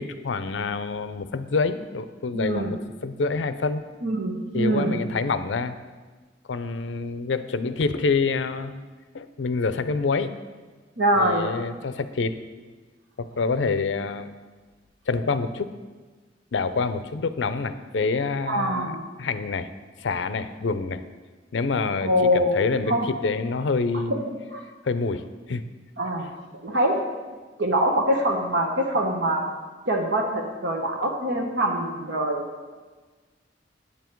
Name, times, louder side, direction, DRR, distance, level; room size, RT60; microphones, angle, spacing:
voice 1, 0.0-3.8 4.5-5.8 6.5-8.8 9.1-10.3 11.1-12.3 13.2-14.3 15.1-15.7 16.5-19.7 20.0-21.0 21.5-24.2 24.8-25.7, left 4 dB, 85° left, 12 dB, 0.5 m, -27 dB
voice 2, 2.3-2.7 4.0-5.0 11.0-11.5 18.5-19.1 22.0-22.5 22.9-23.1 23.9-24.2 24.5-24.6 26.0-26.3 26.6-27.0 27.6-29.5 29.9-32.4, equal, 75° right, 0 dB, 1.1 m, -24 dB
9.2 x 8.6 x 4.6 m, 1.3 s
head